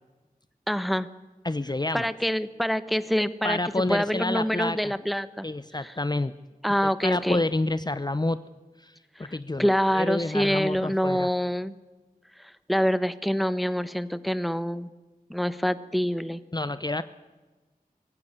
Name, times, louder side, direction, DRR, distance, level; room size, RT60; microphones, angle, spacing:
voice 1, 0.7-1.1 1.9-3.6 3.9-5.5 5.8-5.9 6.6-7.4 9.2-11.7 12.4-14.9 15.3-16.4, equal, ahead, 13 dB, 1.0 m, -26 dB
voice 2, 1.4-2.1 3.4-5.0 5.4-6.3 7.0-8.4 8.8-11.3 16.5-17.0, left 2 dB, 30° left, 13 dB, 0.7 m, -29 dB
20.5 x 15.5 x 9.9 m, 1.2 s
wide cardioid pair, 60°, 15 cm